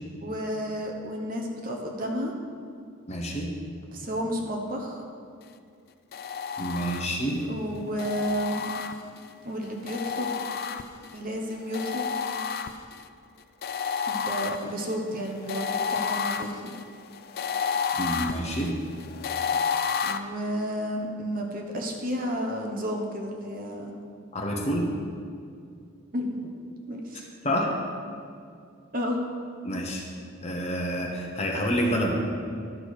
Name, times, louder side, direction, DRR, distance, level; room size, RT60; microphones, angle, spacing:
voice 1, 0.2-2.3 3.9-5.0 7.5-8.7 9.4-10.3 11.1-12.1 14.1-16.5 20.0-23.9 26.1-26.5 26.9-27.2 28.9-29.2, equal, 40° right, 1 dB, 1.0 m, -31 dB
voice 2, 3.1-3.5 6.6-7.4 18.0-18.7 24.3-24.9 27.4-27.7 29.6-30.0 30.4-32.1, equal, 30° left, 0 dB, 1.1 m, -28 dB
sound 1, 6.1-7.4 8.0-9.3 9.9-11.2 11.7-13.1 13.6-20.2, left 6 dB, 45° left, 0.3 m, -31 dB
12.0 x 6.2 x 4.9 m, 2.3 s
head